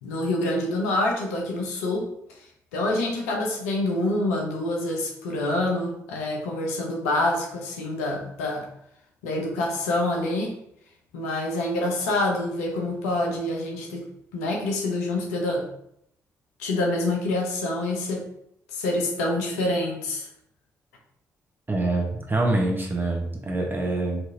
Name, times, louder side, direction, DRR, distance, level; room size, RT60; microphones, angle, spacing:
voice 1, 0.0-2.1 2.7-8.7 9.2-10.6 11.1-14.0 14.3-15.7 16.6-18.3 18.7-20.3, left 2 dB, 85° left, 0 dB, 0.7 m, -26 dB
voice 2, 21.7-24.2, right 2 dB, 25° right, 0 dB, 1.2 m, -25 dB
4.4 x 3.0 x 2.7 m, 0.73 s
hypercardioid pair, 40°, 8 cm